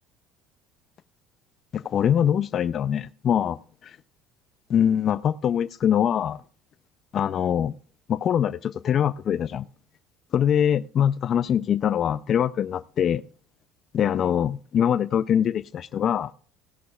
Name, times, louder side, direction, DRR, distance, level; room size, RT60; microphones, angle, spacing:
voice 1, 1.7-4.0 4.7-6.4 7.1-7.7 8.1-9.7 10.3-13.2 13.9-16.3, left 9 dB, 50° left, 0.4 m, -23 dB
17.5 x 11.0 x 2.3 m
supercardioid pair, 75°, 0 cm